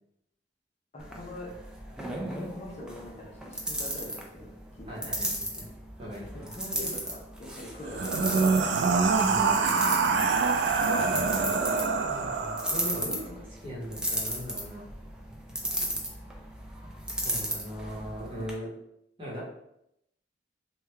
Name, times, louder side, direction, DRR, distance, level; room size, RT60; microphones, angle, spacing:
voice 1, 0.9-1.5 2.3-4.9 6.3-8.7 9.6-10.0, left 1 dB, 35° left, -3 dB, 0.7 m, -43 dB
sound 1, 1.0-18.5, right 1 dB, 5° right, 0.4 m, -36 dB
voice 2, 4.9-5.7 6.0-6.5 9.3-9.8 11.9-14.9 17.1-18.7 19.2-19.4, equal, 30° right, -6 dB, 1.0 m, -39 dB
sound 2, 7.9-13.1, right 4 dB, 80° right, 0.3 m, -25 dB
3.1 x 2.3 x 3.2 m, 0.79 s
head